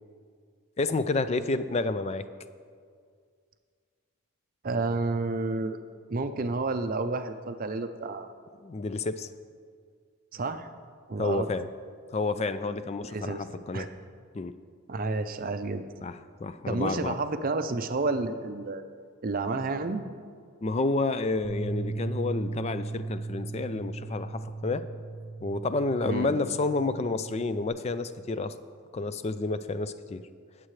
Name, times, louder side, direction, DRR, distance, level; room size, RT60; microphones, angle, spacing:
voice 1, 0.8-2.2 8.6-9.3 11.2-11.7 12.1-13.9 14.3-14.5 16.0-17.2 20.6-24.8 25.4-28.5 28.9-30.2, left 3 dB, 30° left, 12 dB, 0.3 m, -30 dB
voice 2, 4.6-5.8 6.1-8.3 10.3-10.7 11.1-11.5 13.1-13.4 13.7-13.9 14.9-15.8 16.7-18.8 19.2-20.0 26.0-26.3, right 3 dB, 40° right, 9 dB, 0.5 m, -30 dB
Bass guitar, 21.4-27.7, right 3 dB, 85° left, 2.6 m, -37 dB
19.0 x 7.6 x 3.2 m, 2.1 s
head